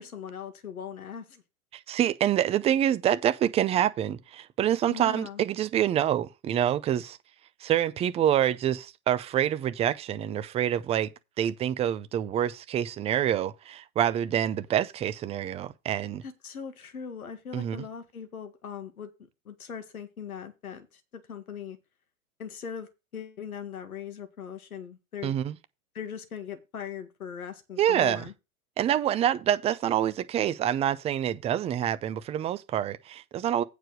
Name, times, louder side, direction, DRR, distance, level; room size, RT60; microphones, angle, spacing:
voice 1, 0.0-1.4 4.9-5.4 16.2-19.1 19.5-20.9 21.1-21.8 22.4-25.3 25.9-28.3, left 7 dB, 80° left, 2.0 m, -40 dB
voice 2, 1.9-7.2 7.6-11.1 11.4-16.2 17.5-17.8 25.2-25.6 27.8-28.2 28.8-33.6, right 11 dB, 15° right, 0.5 m, -26 dB
9.0 x 4.9 x 6.1 m
hypercardioid pair, 110°, 43 cm